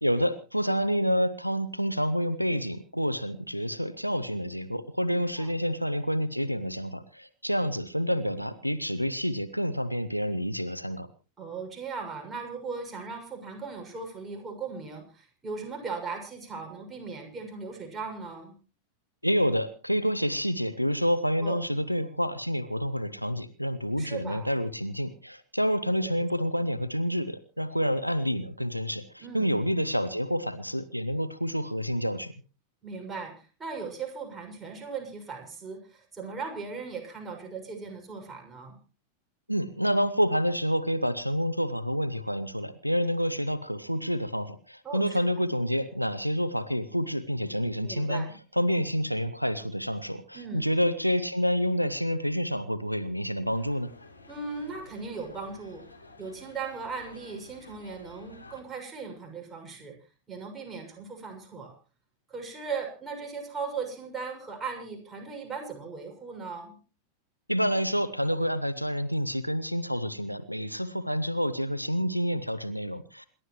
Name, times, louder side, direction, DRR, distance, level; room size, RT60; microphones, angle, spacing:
voice 1, 0.0-11.1 19.2-32.3 39.5-48.3 48.6-53.9 67.5-73.2, equal, 90° right, 14 dB, 0.9 m, -28 dB
voice 2, 5.1-5.5 11.4-18.5 21.4-21.7 24.0-24.5 26.0-26.3 29.2-29.5 32.8-38.8 44.8-45.3 47.8-48.3 50.3-50.7 54.3-55.8 56.2-59.9 60.3-61.7 62.3-66.8, right 5 dB, 15° right, 1 dB, 6.7 m, -38 dB
sound 1, 53.5-58.6, left 3 dB, 85° left, 3.3 m, -52 dB
28.0 x 12.5 x 3.1 m, 0.36 s
figure-of-eight pair, 90°, 0 cm